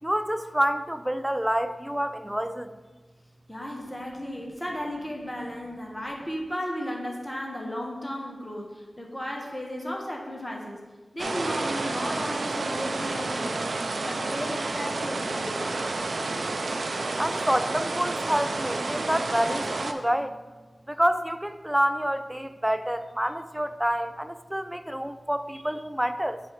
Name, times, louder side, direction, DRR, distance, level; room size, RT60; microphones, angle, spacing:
voice 1, 0.0-2.8 17.2-20.4 20.9-26.4, equal, 5° right, 11 dB, 0.3 m, -28 dB
voice 2, 3.5-10.8 11.1-13.7 14.0-15.8, equal, 15° left, -1 dB, 1.1 m, -34 dB
sound 1, 11.2-19.9, right 3 dB, 70° right, 0.4 m, -30 dB
9.1 x 3.3 x 4.6 m, 1.3 s
wide cardioid pair, 70°, 0 cm